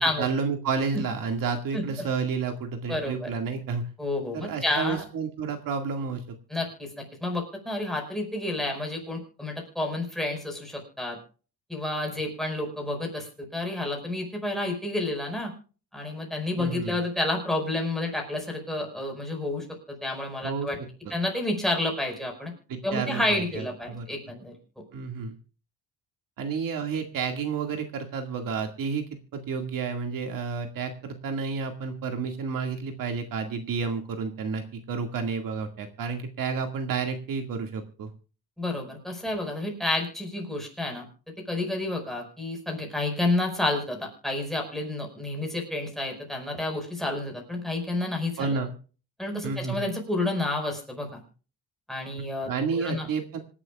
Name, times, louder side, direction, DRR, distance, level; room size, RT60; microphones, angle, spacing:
voice 1, 0.0-3.9 4.3-6.4 16.6-17.0 20.4-20.7 21.1-21.2 22.7-24.1 24.9-25.4 26.4-29.0 29.3-38.1 48.4-48.7 49.4-49.8 52.5-53.4, right 5 dB, 60° right, 5 dB, 2.1 m, -30 dB
voice 2, 1.7-2.1 2.9-3.3 4.0-5.1 6.5-11.2 11.7-15.5 15.9-20.8 21.1-22.5 22.8-24.5 38.6-41.1 41.5-48.6 49.2-51.2 51.9-53.1, left 2 dB, ahead, 1 dB, 5.0 m, -30 dB
26.0 x 11.5 x 2.4 m, 0.37 s
cardioid pair, 160°, 37 cm